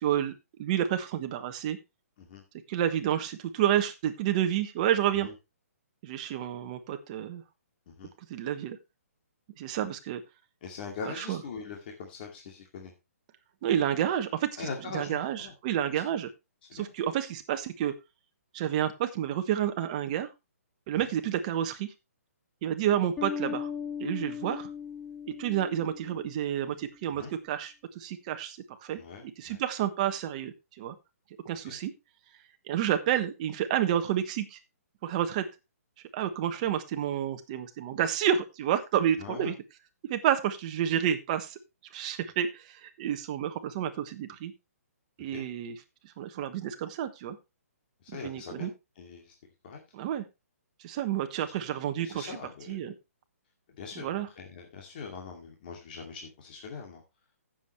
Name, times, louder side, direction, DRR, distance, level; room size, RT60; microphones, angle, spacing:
voice 1, 0.0-0.3 0.6-1.8 2.7-5.3 6.0-7.4 8.3-8.8 9.6-10.2 11.2-11.4 13.6-14.7 14.9-16.3 16.7-17.9 18.5-20.3 20.9-21.9 22.6-23.7 24.0-24.7 25.4-30.9 31.4-31.9 32.7-34.6 35.0-35.5 36.1-39.5 40.1-41.6 41.9-44.5 45.2-45.8 46.2-47.4 48.2-48.7 49.9-50.2 50.8-52.3 52.7-52.9 54.0-54.3, right 10 dB, 30° right, 7 dB, 1.3 m, -30 dB
voice 2, 10.6-12.9 14.6-15.5 16.7-16.9 20.9-21.1 27.1-27.3 29.0-29.6 31.7-31.8 39.2-39.5 45.3-45.4 48.0-48.7 49.0-49.3 49.6-49.8 52.0-52.9 53.8-57.0, left 5 dB, 35° left, 0 dB, 2.4 m, -42 dB
Bass guitar, 23.2-26.7, left 7 dB, 10° left, 1.1 m, -38 dB
15.5 x 7.5 x 3.1 m, 0.25 s
hypercardioid pair, 165°, 8 cm